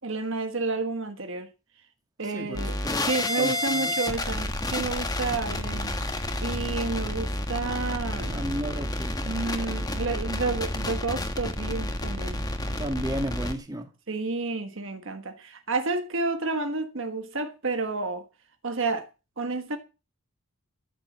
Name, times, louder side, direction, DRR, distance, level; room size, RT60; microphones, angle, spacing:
voice 1, 0.0-1.5 2.2-2.8 3.0-5.9 6.4-8.4 9.2-12.4 14.1-18.2 18.6-19.1 19.4-19.8, right 3 dB, 60° right, 1.4 m, -30 dB
voice 2, 2.3-3.0 3.4-4.0 8.3-9.3 12.8-13.9, right 1 dB, 15° right, 2.2 m, -34 dB
sound 1, 2.5-13.5, left 1 dB, 15° left, 1.5 m, -30 dB
13.5 x 7.3 x 7.2 m
head